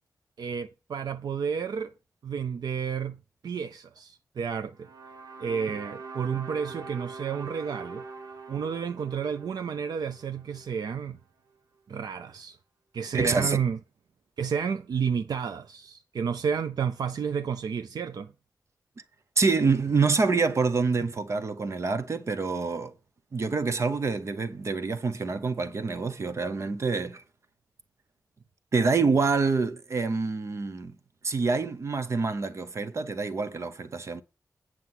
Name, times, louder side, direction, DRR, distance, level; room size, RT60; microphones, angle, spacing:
voice 1, 0.4-1.9 2.2-4.9 5.4-8.0 8.5-11.2 11.9-12.6 12.9-13.8 14.4-18.3, right 6 dB, 90° right, 0.6 m, -31 dB
sound 1, 4.8-11.0, right 4 dB, 65° right, 1.5 m, -43 dB
voice 2, 13.1-13.6 19.4-22.9 23.3-27.2 28.7-30.9 31.2-34.2, right 4 dB, 45° right, 0.9 m, -26 dB
9.6 x 6.1 x 6.0 m
wide cardioid pair, 165°, 7 cm